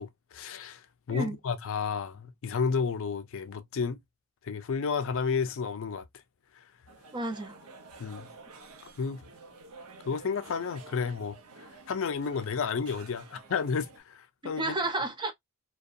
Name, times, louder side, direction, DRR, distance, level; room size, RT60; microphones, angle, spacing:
voice 1, 0.0-4.0 4.4-6.0 6.6-6.7 8.0-8.3 9.0-9.2 10.1-11.4 11.9-14.8, left 5 dB, 60° left, 0.4 m, -31 dB
sound 1, 6.9-14.0, right 3 dB, 80° right, 0.6 m, -51 dB
voice 2, 7.1-7.6 14.4-15.3, right 2 dB, 20° right, 0.5 m, -31 dB
2.6 x 2.2 x 2.3 m
head